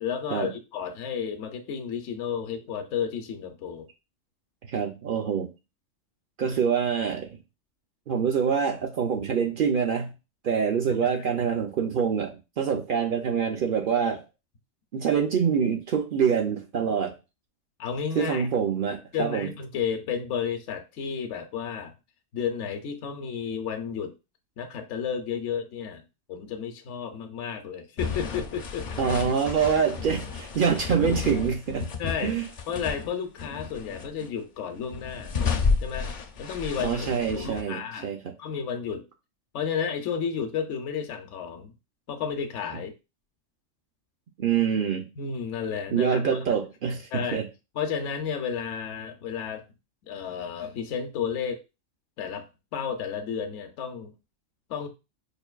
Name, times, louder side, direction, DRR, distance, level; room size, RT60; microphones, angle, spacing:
voice 1, 0.0-3.9 17.8-18.5 19.1-21.9 22.3-24.1 24.6-26.0 26.3-28.9 32.0-32.4 32.7-35.4 35.8-36.1 36.4-38.1 38.4-39.1 39.5-41.7 42.1-42.9 45.2-46.2 47.1-47.4 47.8-49.6 50.1-51.6 52.2-54.1 54.7-54.9, left 7 dB, 70° left, 0.9 m, -32 dB
voice 2, 4.7-5.5 6.4-7.4 8.1-10.1 10.4-14.2 14.9-17.2 18.2-19.5 29.0-31.9 32.2-32.4 36.8-38.3 44.4-45.1 45.9-47.5, right 7 dB, 60° right, 0.6 m, -25 dB
sound 1, 28.0-33.1 33.4-34.3 34.8-37.6, left 5 dB, 55° left, 0.6 m, -31 dB
5.1 x 2.6 x 2.3 m
omnidirectional pair, 1.3 m